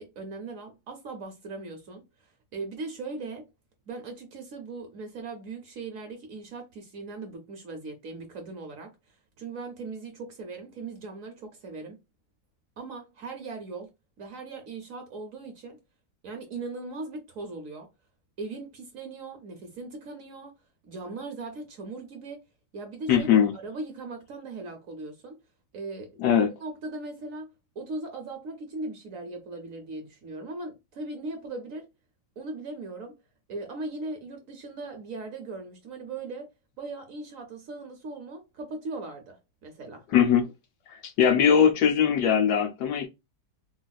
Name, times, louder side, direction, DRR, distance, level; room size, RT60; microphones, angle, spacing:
voice 1, 0.0-2.0 2.5-3.5 3.9-8.9 9.4-12.0 12.8-13.9 14.2-15.8 16.2-17.9 18.4-20.5 20.9-22.5 22.7-25.4 25.7-26.2 26.6-27.5 27.8-31.9 32.4-33.2 33.5-36.5 36.8-40.1, right 3 dB, 60° right, 1.0 m, -39 dB
voice 2, 23.1-23.5 26.2-26.5 40.1-40.4 40.9-43.1, left 8 dB, 75° left, 1.2 m, -21 dB
4.0 x 2.3 x 2.3 m
omnidirectional pair, 1.9 m